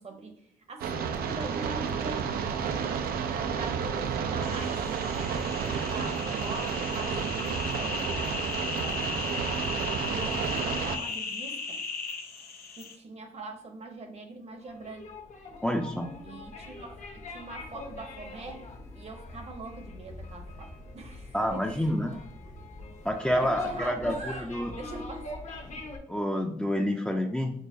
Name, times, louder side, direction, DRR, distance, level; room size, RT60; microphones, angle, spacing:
voice 1, 0.0-2.2 2.6-4.8 5.0-11.8 12.8-15.0 16.2-18.7 18.9-22.5 23.4-25.4, right 3 dB, 45° right, 5 dB, 0.9 m, -43 dB
sound 1, 0.8-11.0, right 6 dB, 80° right, 0.4 m, -31 dB
sound 2, 4.4-12.9, left 4 dB, 80° left, 0.7 m, -36 dB
sound 3, 14.6-26.0, left 3 dB, 50° left, 0.9 m, -42 dB
voice 2, 15.6-16.1 21.3-22.1 23.0-24.1 24.4-24.7 26.1-27.5, equal, 5° left, 3 dB, 0.5 m, -28 dB
6.2 x 2.2 x 2.7 m, 0.67 s
cardioid pair, 80°, 15 cm